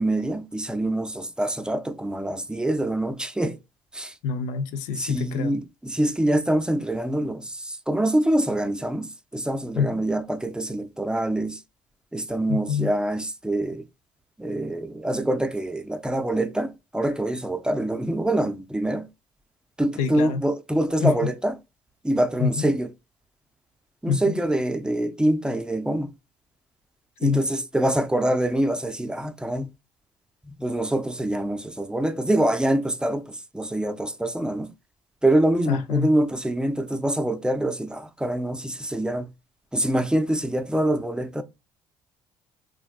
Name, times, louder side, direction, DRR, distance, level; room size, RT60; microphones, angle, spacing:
voice 1, 0.0-3.6 3.9-4.1 4.9-11.6 12.1-13.9 14.4-19.1 19.8-21.5 22.0-22.9 24.0-26.1 27.2-29.7 30.5-34.7 35.2-39.3 39.7-41.4, right 1 dB, 5° right, 0.5 m, -25 dB
voice 2, 4.2-5.5 9.8-10.0 12.5-12.9 20.0-20.4 21.0-21.1 22.4-22.7 24.1-24.4 27.2-27.4 35.7-36.1, left 6 dB, 75° left, 0.5 m, -26 dB
3.3 x 2.3 x 2.3 m
hypercardioid pair, 55°, 13 cm